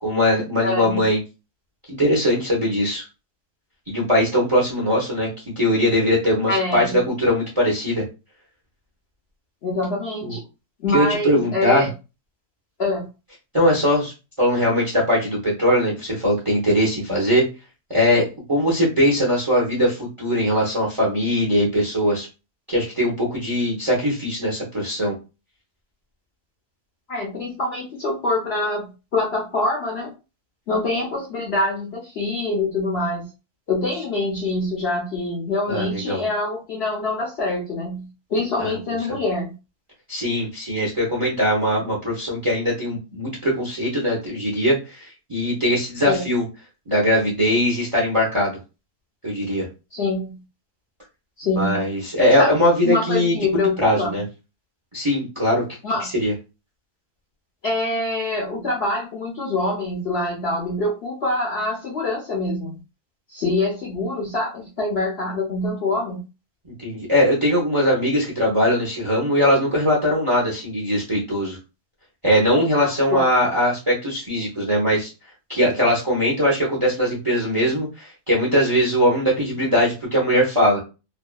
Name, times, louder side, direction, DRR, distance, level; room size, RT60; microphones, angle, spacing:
voice 1, 0.0-1.2 1.9-3.0 3.9-5.3 5.6-8.0 10.2-10.3 10.9-11.9 13.5-14.1 14.4-17.5 17.9-22.3 22.7-25.1 35.7-36.2 38.6-38.7 39.1-39.2 40.1-46.4 46.9-48.6 49.2-49.7 51.5-53.3 53.8-54.2 54.9-55.7 56.2-56.3 66.8-71.6 72.2-75.1 75.5-80.8, equal, 35° right, -4 dB, 0.5 m, -20 dB
voice 2, 0.6-1.0 6.5-7.0 9.6-10.4 10.8-11.9 12.8-13.1 27.1-30.1 30.7-33.3 33.7-39.6 46.0-46.2 49.9-50.4 51.4-51.8 52.4-52.5 52.8-54.2 55.8-56.1 57.6-62.7 63.3-66.2 72.7-73.3, left 2 dB, 55° left, -2 dB, 0.7 m, -25 dB
2.7 x 2.3 x 2.2 m, 0.30 s
omnidirectional pair, 1.6 m